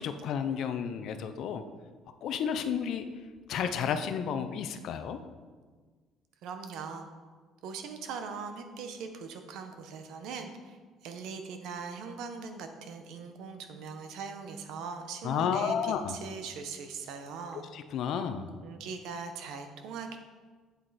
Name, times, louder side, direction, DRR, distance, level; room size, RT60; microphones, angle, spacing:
voice 1, 0.0-1.6 2.2-3.0 3.5-5.2 15.2-16.1 17.7-18.5, left 7 dB, 55° left, 9 dB, 0.6 m, -31 dB
voice 2, 6.4-7.1 7.6-17.7 18.6-20.2, right 5 dB, 70° right, 6 dB, 1.0 m, -41 dB
8.2 x 7.7 x 4.2 m, 1.5 s
cardioid pair, 160°, 0 cm